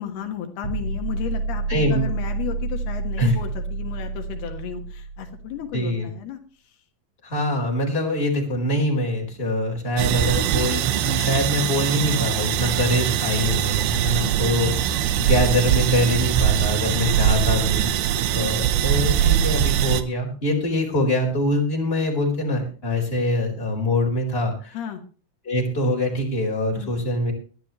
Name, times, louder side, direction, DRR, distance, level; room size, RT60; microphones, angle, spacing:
voice 1, 0.0-6.4 6.6-6.8 14.2-14.8 24.7-25.0 26.8-26.9, left 9 dB, 80° left, 4 dB, 3.5 m, -34 dB
sound 1, 0.6-5.7, right 3 dB, 50° right, 6.6 m, -29 dB
voice 2, 1.7-2.0 3.2-3.3 5.7-6.1 7.2-14.7 15.2-24.8 25.4-27.3, left 1 dB, 15° left, 0 dB, 4.5 m, -24 dB
sound 2, 10.0-20.0, right 10 dB, 80° right, 2.9 m, -22 dB
21.0 x 12.0 x 3.1 m, 0.39 s
omnidirectional pair, 4.5 m